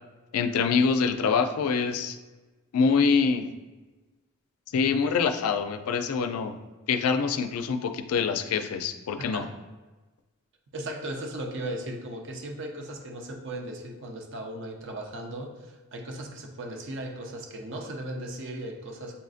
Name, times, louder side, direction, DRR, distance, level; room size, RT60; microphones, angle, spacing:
voice 1, 0.3-2.2 2.7-3.5 4.7-6.6 6.9-9.4, left 5 dB, 80° left, 9 dB, 0.4 m, -25 dB
voice 2, 9.2-9.5 10.7-19.2, right 1 dB, 55° right, 1 dB, 0.6 m, -37 dB
6.9 x 2.5 x 2.4 m, 1.2 s
head